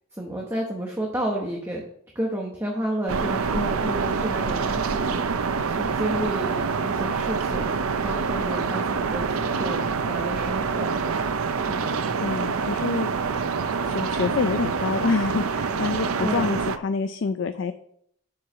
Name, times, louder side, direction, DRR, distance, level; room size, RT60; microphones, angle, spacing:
voice 1, 0.1-1.8 2.1-10.9 11.5-11.9 16.2-16.6, right 1 dB, 10° right, -1 dB, 1.0 m, -31 dB
sound 1, 3.1-16.8, right 5 dB, 80° right, 0.6 m, -26 dB
voice 2, 3.6-3.9 12.2-13.1 13.9-17.7, left 4 dB, 55° left, 9 dB, 0.4 m, -27 dB
7.2 x 4.8 x 6.1 m, 0.70 s
head